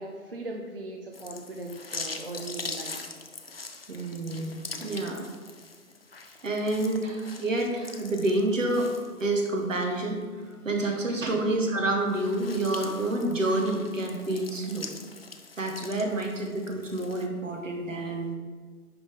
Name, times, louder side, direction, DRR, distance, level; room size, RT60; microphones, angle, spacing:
voice 1, 0.0-3.1 11.3-11.4, right 2 dB, 40° right, 1 dB, 0.4 m, -39 dB
sound 1, 1.1-9.7 10.2-10.3 12.0-17.3, left 3 dB, 45° left, 0.4 m, -42 dB
voice 2, 3.9-4.5 4.8-5.2 6.4-8.9 9.2-10.2 10.6-14.9 15.6-18.3, right 2 dB, 55° right, 2 dB, 1.2 m, -28 dB
10.0 x 3.6 x 3.6 m, 1.5 s
figure-of-eight pair, 140°, 45 cm